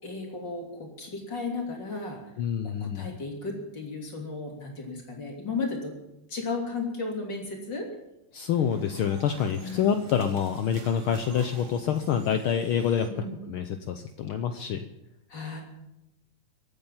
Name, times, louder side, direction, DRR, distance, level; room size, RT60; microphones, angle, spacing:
voice 1, 0.0-2.3 2.6-6.0 6.3-7.9 9.6-9.9 13.1-13.4 15.3-15.6, left 3 dB, 40° left, 0 dB, 3.6 m, -34 dB
voice 2, 2.4-3.1 8.3-13.1 13.5-14.8, left 8 dB, 80° left, 8 dB, 1.2 m, -27 dB
sound 1, 8.5-13.1, right 4 dB, 75° right, 3.1 m, -48 dB
24.5 x 9.0 x 5.7 m, 0.88 s
omnidirectional pair, 3.3 m